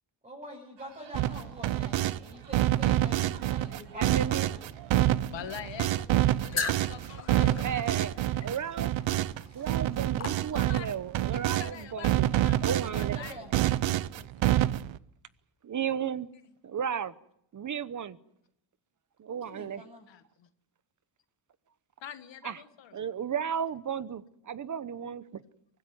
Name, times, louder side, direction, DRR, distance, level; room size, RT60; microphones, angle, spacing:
voice 1, 0.2-4.8 5.2-5.5 12.8-13.5 19.4-20.1, equal, 15° right, 7.2 m, -46 dB
sound 1, 0.8-10.6, right 5 dB, 65° right, 4.1 m, -56 dB
sound 2, 1.1-2.2 2.5-11.7 12.0-15.0, right 13 dB, 80° right, 0.8 m, -27 dB
voice 2, 4.0-4.5 7.6-8.2 8.4-8.9 9.5-12.3 12.6-13.2 15.6-16.3 16.6-17.1 17.5-18.2 19.2-19.8 22.4-22.6 22.9-25.2, right 8 dB, 40° right, 1.0 m, -34 dB
voice 3, 5.3-6.1 6.4-7.7 10.5-10.9 11.3-13.4 14.2-14.3 14.5-14.6 20.1-20.5 22.0-23.0, left 10 dB, 70° left, 1.8 m, -44 dB
sound 3, 6.5-11.0, left 4 dB, 35° left, 3.7 m, -38 dB
24.5 x 15.5 x 9.6 m
cardioid pair, 135°, 45 cm